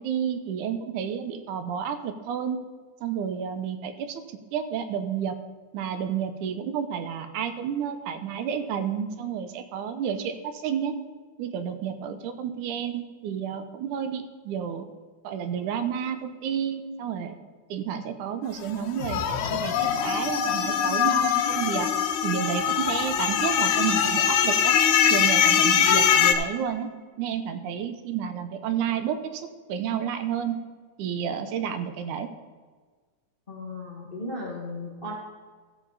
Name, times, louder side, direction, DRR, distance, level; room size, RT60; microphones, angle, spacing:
voice 1, 0.0-2.6 3.0-5.4 5.7-10.9 11.4-14.9 15.2-17.4 17.7-21.9 22.2-24.8 25.1-26.9 27.2-30.6 31.0-32.3, right 8 dB, 80° right, 8 dB, 2.2 m, -30 dB
sound 1, 19.0-26.4, left 8 dB, 75° left, 2.2 m, -22 dB
voice 2, 33.5-35.1, left 2 dB, 35° left, -3 dB, 0.9 m, -36 dB
14.0 x 7.4 x 4.0 m, 1.5 s
omnidirectional pair, 3.5 m